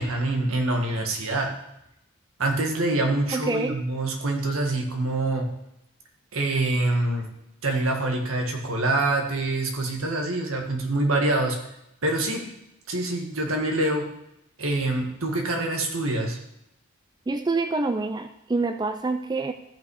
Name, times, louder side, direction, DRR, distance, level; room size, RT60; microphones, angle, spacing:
voice 1, 0.0-1.5 2.4-5.4 6.3-7.3 7.6-11.6 12.0-12.4 12.9-14.0 14.6-16.4, right 2 dB, 80° right, 2 dB, 1.7 m, -25 dB
voice 2, 3.3-3.8 17.3-19.5, right 3 dB, 20° right, 8 dB, 0.4 m, -26 dB
14.0 x 5.8 x 4.9 m, 0.82 s
head